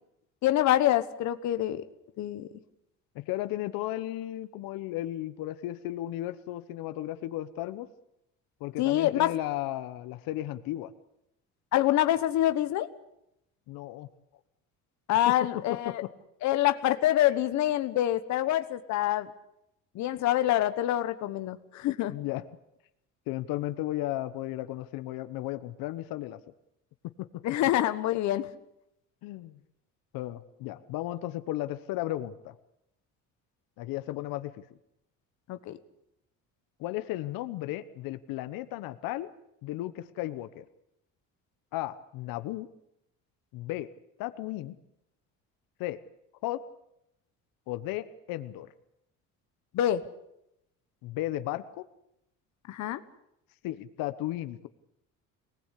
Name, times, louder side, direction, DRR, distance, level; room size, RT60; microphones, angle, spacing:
voice 1, 0.4-1.8 2.2-2.5 8.8-9.3 11.7-12.9 15.1-16.0 16.4-19.3 19.9-22.1 27.4-28.5 35.5-35.8 49.7-50.0 52.7-53.0, left 13 dB, 55° left, 11 dB, 1.3 m, -26 dB
voice 2, 3.1-7.9 8.6-10.9 13.7-14.1 15.3-15.4 15.7-16.1 22.1-22.4 23.3-26.4 27.0-27.4 29.2-29.6 30.1-32.5 33.8-34.6 36.8-39.3 39.6-40.7 41.7-42.7 43.5-43.9 44.2-44.8 45.8-46.0 46.4-46.6 47.7-48.7 51.0-51.9 53.6-54.7, left 15 dB, 90° left, 12 dB, 1.1 m, -35 dB
24.0 x 19.0 x 8.4 m, 0.81 s
cardioid pair, 180°, 33 cm